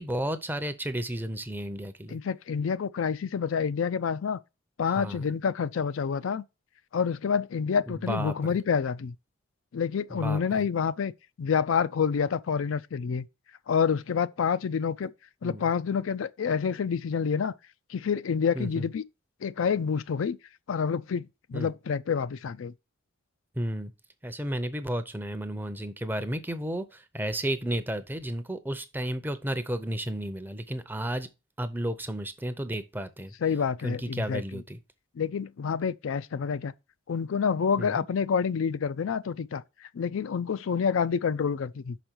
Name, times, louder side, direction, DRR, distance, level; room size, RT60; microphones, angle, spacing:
voice 1, 0.0-2.2 4.9-5.3 7.9-8.6 10.1-10.7 15.4-15.6 18.5-18.9 21.5-21.7 23.6-23.9 24.2-31.3 31.6-33.3 33.8-34.8 36.3-36.5 37.8-38.0, right 1 dB, 10° right, 0.6 m, -33 dB
voice 2, 2.1-4.4 4.8-6.4 6.9-9.1 9.7-11.1 11.4-13.3 13.7-15.1 15.4-17.5 17.9-19.0 19.4-20.4 20.7-22.7 33.4-34.6 35.2-36.7 37.1-39.6 39.9-42.0, left 6 dB, 75° left, 0.4 m, -28 dB
6.1 x 5.1 x 4.5 m
head